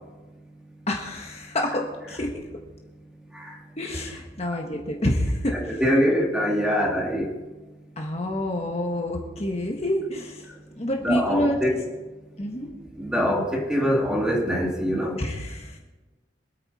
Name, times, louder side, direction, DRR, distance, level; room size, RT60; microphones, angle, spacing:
voice 1, 0.9-2.4 3.8-5.8 8.0-10.5 10.7-11.8 12.4-12.7 15.2-15.8, left 1 dB, 35° left, 1 dB, 1.4 m, -28 dB
voice 2, 5.5-7.3 11.0-11.8 13.0-15.2, equal, 5° right, -1 dB, 2.4 m, -23 dB
24.5 x 9.1 x 4.2 m, 1.2 s
head